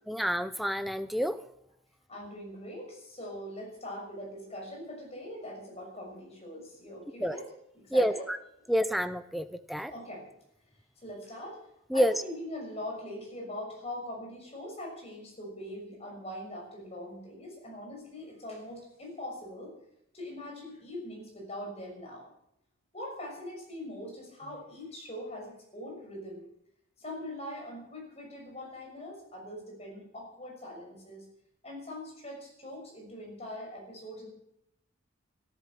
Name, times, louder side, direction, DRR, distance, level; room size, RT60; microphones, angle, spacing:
voice 1, 0.1-1.4 7.2-7.4 7.9-8.4 8.7-9.9 11.9-12.1, equal, ahead, 11 dB, 0.6 m, -28 dB
voice 2, 2.1-8.3 8.6-8.7 9.9-10.2 11.0-11.6 11.9-19.7 20.1-22.3 22.9-26.4 27.0-31.2 31.6-34.3, left 1 dB, 30° left, -1 dB, 6.5 m, -42 dB
13.5 x 12.5 x 7.5 m, 0.77 s
head